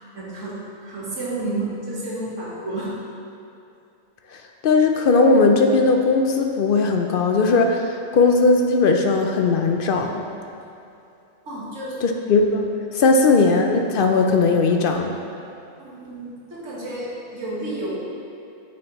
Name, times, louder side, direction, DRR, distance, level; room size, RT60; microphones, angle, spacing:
voice 1, 0.1-0.6 0.8-2.9 11.5-12.0 13.0-13.1 15.8-17.9, right 2 dB, 75° right, -6 dB, 2.0 m, -31 dB
voice 2, 4.3-10.2 12.0-12.7 12.9-15.1, left 3 dB, 60° left, 3 dB, 0.6 m, -18 dB
9.0 x 6.3 x 3.1 m, 2.7 s
omnidirectional pair, 1.3 m